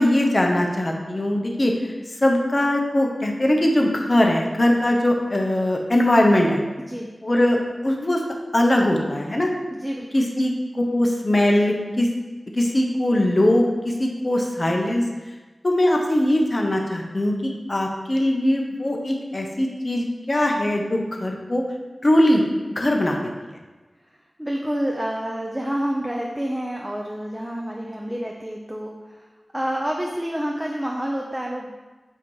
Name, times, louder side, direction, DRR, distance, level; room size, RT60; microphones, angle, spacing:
voice 1, 0.0-1.7 2.2-6.6 7.2-8.2 8.5-9.5 10.1-12.1 12.6-15.0 15.6-21.6 22.0-22.4 22.8-23.2, left 1 dB, 35° left, 1 dB, 1.0 m, -21 dB
voice 2, 9.7-10.1 24.4-28.9 29.5-31.7, equal, 10° right, -1 dB, 0.6 m, -28 dB
8.2 x 3.1 x 5.5 m, 1.2 s
wide cardioid pair, 80°, 0 cm